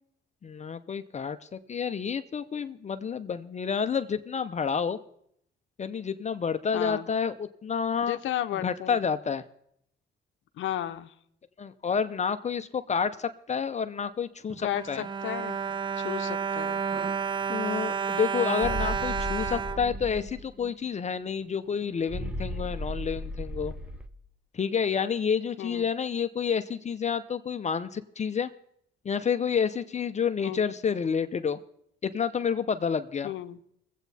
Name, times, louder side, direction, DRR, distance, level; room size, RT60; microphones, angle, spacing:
voice 1, 0.4-5.0 5.8-8.2 8.5-9.4 11.6-15.0 17.5-23.7 24.5-28.5 29.0-31.6 32.0-33.3, left 6 dB, 35° left, 10 dB, 0.6 m, -29 dB
voice 2, 6.7-7.1 8.0-9.0 10.6-11.1 14.6-14.8 15.2-15.6 16.0-16.8 18.7-19.0 25.6-25.9 30.4-30.6 33.2-33.6, left 12 dB, 75° left, 9 dB, 0.7 m, -33 dB
Bowed string instrument, 14.5-20.7 21.4-21.5 21.8-22.0, right 6 dB, 25° right, 0.4 m, -31 dB
sound 1, 18.6-20.4 22.1-24.1, equal, 5° right, 1.0 m, -35 dB
21.0 x 8.2 x 4.1 m, 0.71 s
cardioid pair, 90°, 20 cm